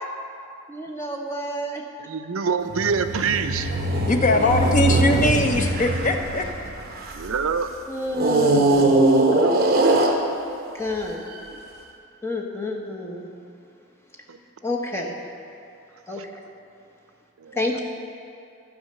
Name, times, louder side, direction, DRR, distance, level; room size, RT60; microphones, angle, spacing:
voice 1, 0.7-2.1 4.9-5.7 7.9-9.0 10.7-11.3 12.2-13.3 14.6-15.1 16.1-16.4 17.5-17.8, left 2 dB, 10° left, 0 dB, 0.9 m, -29 dB
voice 2, 2.1-3.7 7.1-7.7 9.2-9.6 14.3-14.4 17.4-17.8, right 5 dB, 75° right, 9 dB, 0.5 m, -26 dB
sound 1, 2.7-7.4 8.1-10.7 11.4-11.5, right 2 dB, 45° right, 0.9 m, -21 dB
voice 3, 4.1-6.4, left 1 dB, 35° left, 4 dB, 0.6 m, -21 dB
13.5 x 4.9 x 6.7 m, 2.6 s
head